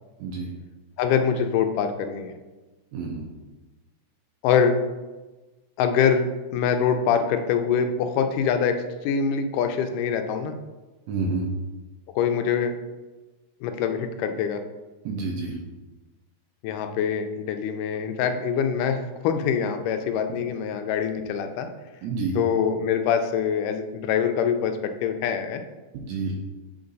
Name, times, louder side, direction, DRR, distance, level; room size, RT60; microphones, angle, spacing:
voice 1, 1.0-2.3 4.4-4.8 5.8-8.8 9.0-10.6 12.2-12.7 13.6-14.6 16.6-21.7 22.4-25.6, left 7 dB, 80° left, 7 dB, 2.1 m, -24 dB
voice 2, 2.9-3.3 11.1-11.5 15.0-15.6 22.0-22.4 25.9-26.3, right 4 dB, 70° right, 0 dB, 1.8 m, -29 dB
7.9 x 3.7 x 3.9 m, 1.2 s
omnidirectional pair, 3.8 m